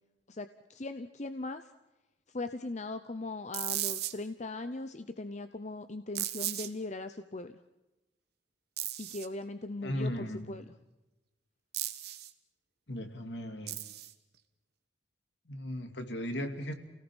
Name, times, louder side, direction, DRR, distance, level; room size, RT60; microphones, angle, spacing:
voice 1, 0.3-1.7 2.3-7.5 9.0-10.6, left 2 dB, 40° left, 10 dB, 0.8 m, -39 dB
sound 1, 3.5-4.1 6.2-6.7 8.8-9.3 11.7-12.3 13.7-14.1, right 13 dB, 60° right, 1.5 m, -35 dB
voice 2, 9.8-10.6 12.9-13.8 15.5-16.7, left 1 dB, 70° left, 6 dB, 2.6 m, -36 dB
29.0 x 18.0 x 6.3 m, 1.0 s
head